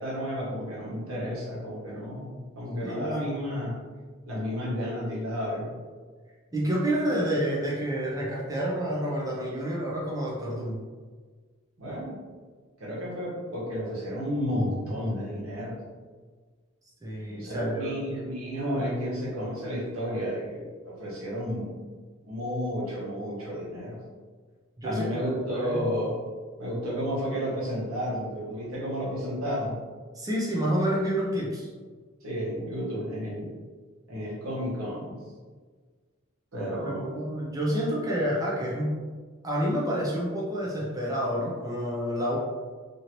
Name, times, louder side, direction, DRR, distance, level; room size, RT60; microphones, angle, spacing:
voice 1, 0.0-3.7 4.3-5.7 11.8-12.1 12.8-15.8 17.3-21.7 22.2-24.0 24.8-26.2 26.6-29.7 32.2-33.5 34.1-35.2 36.5-37.1, equal, 80° right, -7 dB, 1.3 m, -32 dB
voice 2, 2.8-3.2 6.5-10.8 17.0-18.0 24.8-25.1 25.5-25.9 30.1-31.7 36.8-39.0 39.4-42.4, equal, 15° right, -5 dB, 0.5 m, -29 dB
2.8 x 2.7 x 3.0 m, 1.5 s
head